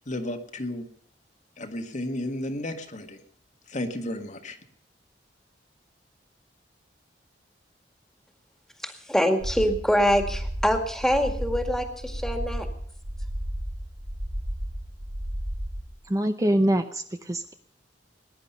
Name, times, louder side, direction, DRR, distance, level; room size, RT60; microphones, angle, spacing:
voice 1, 0.1-0.9 1.6-3.2 3.7-4.6, left 1 dB, 45° left, 5 dB, 1.6 m, -33 dB
voice 2, 8.8-12.7, equal, 5° left, 6 dB, 2.0 m, -24 dB
sound 1, 9.4-15.9, equal, 75° right, 4.1 m, -33 dB
voice 3, 16.0-17.5, right 1 dB, 20° right, 7 dB, 0.7 m, -24 dB
20.5 x 10.5 x 5.6 m, 0.64 s
head